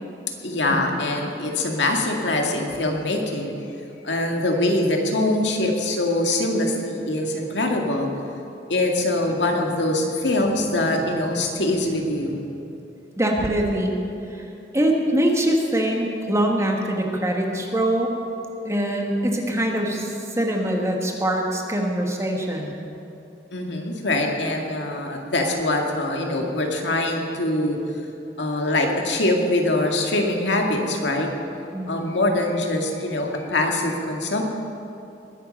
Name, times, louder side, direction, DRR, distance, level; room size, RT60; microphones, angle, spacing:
voice 1, 0.4-3.5 4.0-8.1 8.7-12.6 23.5-27.8 28.4-31.3 31.9-34.4, left 1 dB, 80° left, 1 dB, 2.1 m, -23 dB
voice 2, 13.2-14.0 14.3-14.4 14.7-18.1 18.6-22.8 31.7-32.1, right 1 dB, 15° right, 1 dB, 1.7 m, -23 dB
20.5 x 9.5 x 6.6 m, 2.8 s
head